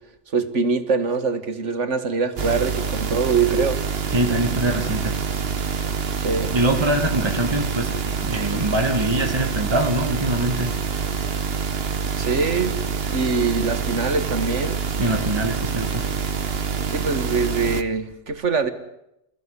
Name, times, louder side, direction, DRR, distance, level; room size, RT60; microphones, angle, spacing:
voice 1, 0.3-3.8 6.2-6.6 12.2-12.8 13.1-14.8 16.9-18.7, right 4 dB, 85° right, 10 dB, 2.1 m, -23 dB
sound 1, 2.4-17.8, right 6 dB, 55° right, 1.4 m, -26 dB
voice 2, 4.1-5.2 6.5-7.9 8.2-10.7 15.0-16.0, right 1 dB, 20° right, 3 dB, 2.2 m, -23 dB
28.0 x 16.0 x 9.7 m, 0.85 s
omnidirectional pair, 1.2 m